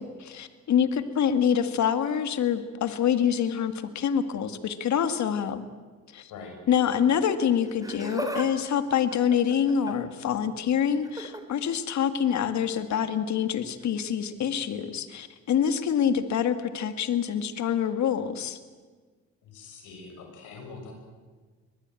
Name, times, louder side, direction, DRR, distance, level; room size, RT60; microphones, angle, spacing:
voice 1, 0.0-5.6 6.1-6.3 6.7-18.6, left 8 dB, 65° left, 10 dB, 2.0 m, -26 dB
Laughter, 7.7-8.5 8.8-10.1 11.0-11.4 12.7-12.9 13.8-13.9, right 2 dB, 10° right, 3.9 m, -36 dB
voice 2, 19.4-20.9, left 4 dB, 85° left, 3 dB, 6.7 m, -43 dB
23.0 x 20.5 x 9.1 m, 1.4 s
cardioid pair, 90°, 30 cm